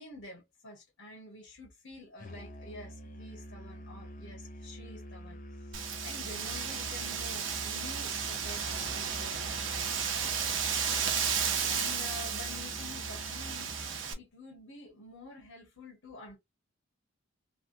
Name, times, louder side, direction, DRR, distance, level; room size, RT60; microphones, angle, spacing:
voice 1, 0.0-10.3 11.6-13.8 14.1-16.4, left 2 dB, 85° left, 1.3 m, -49 dB
Musical instrument, 2.2-14.0, equal, 40° left, 0.6 m, -46 dB
Wind, 5.7-14.1, right 7 dB, 65° right, 0.7 m, -33 dB
3.3 x 2.2 x 2.6 m
head